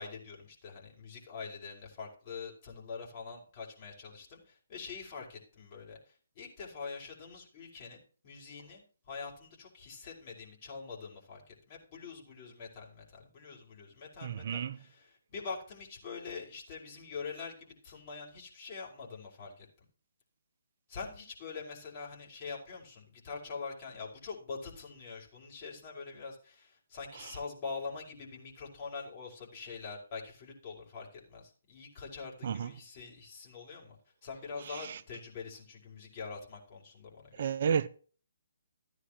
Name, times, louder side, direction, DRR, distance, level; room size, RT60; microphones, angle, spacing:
voice 1, 0.0-6.0 6.3-19.7 20.9-34.0 34.2-37.5, left 5 dB, 40° left, 5.6 m, -44 dB
voice 2, 14.2-14.8 27.2-27.3 32.4-32.7 34.6-35.0 37.3-37.9, right 7 dB, 50° right, 0.6 m, -32 dB
15.0 x 9.7 x 3.0 m
figure-of-eight pair, 145°, 0 cm